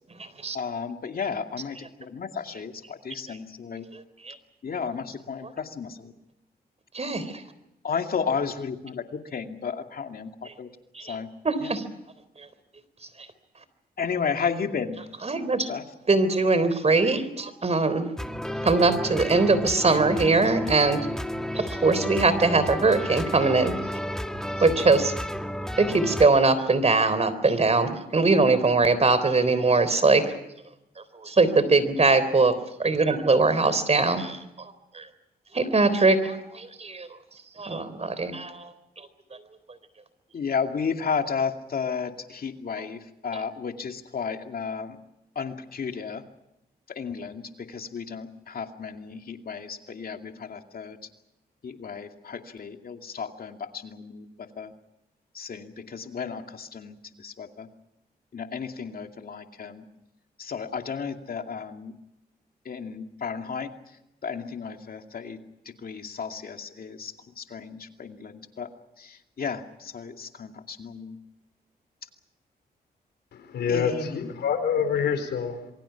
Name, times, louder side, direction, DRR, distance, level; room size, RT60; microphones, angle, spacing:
voice 1, 0.5-3.9 4.6-6.1 7.8-10.7 11.0-11.3 11.6-11.7 14.0-15.0 15.7-15.8 40.3-45.0 45.4-46.2 46.9-51.0 51.6-54.7 55.3-57.7 58.3-59.8 60.4-61.9 62.6-63.7 64.2-65.4 65.7-68.7 69.0-71.2 73.7-74.2, left 6 dB, 60° left, 5 dB, 2.4 m, -33 dB
voice 2, 6.9-7.4 10.9-11.1 11.4-11.8 15.2-15.7 16.1-18.1 18.6-21.0 21.5-23.7 24.6-25.1 25.8-30.4 31.1-32.5 32.8-35.1 35.5-37.1 37.6-38.7, right 3 dB, 40° right, 14 dB, 3.7 m, -22 dB
sound 1, 18.2-26.3, equal, 5° left, 1.7 m, -32 dB
voice 3, 73.3-75.7, left 7 dB, 90° left, 9 dB, 4.3 m, -26 dB
27.0 x 23.5 x 5.9 m, 0.87 s
cardioid pair, 70°, 17 cm